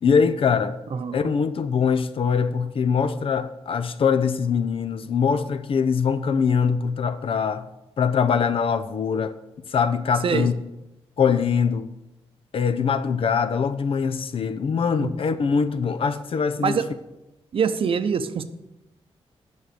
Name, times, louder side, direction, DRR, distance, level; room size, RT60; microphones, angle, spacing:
voice 1, 0.0-0.8 1.1-7.7 8.0-9.3 9.7-10.5 11.2-11.9 12.5-16.8, left 6 dB, 60° left, 0.6 m, -22 dB
voice 2, 0.9-1.3 10.2-10.5 15.0-15.1 16.6-16.9 17.5-18.4, right 6 dB, 55° right, 0.7 m, -24 dB
8.7 x 6.4 x 6.7 m
wide cardioid pair, 115°, 11 cm